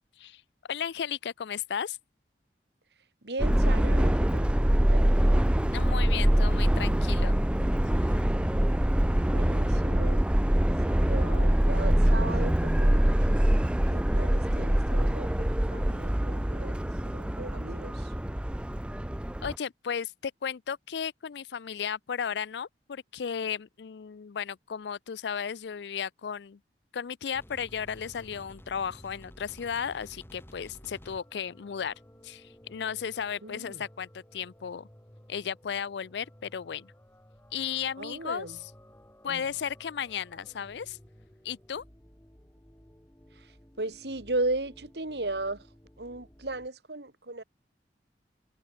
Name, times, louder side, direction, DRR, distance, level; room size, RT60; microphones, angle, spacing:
voice 1, 0.7-2.0 5.7-7.4 8.1-8.2 19.4-26.6 26.9-31.9 32.2-34.9 35.3-36.9 37.5-38.5 39.2-41.0 41.4-41.8, left 7 dB, 80° left, 0.4 m, -35 dB
voice 2, 3.2-5.5 9.3-10.5 10.8-18.1 33.4-33.9 38.0-38.6 39.3-39.4 43.3-45.7 46.0-47.4, right 2 dB, 70° right, 2.1 m, -37 dB
Subway metro underground, 3.4-19.5, equal, 5° right, 0.4 m, -24 dB
sound 1, 27.3-46.7, equal, 15° left, 2.5 m, -54 dB
head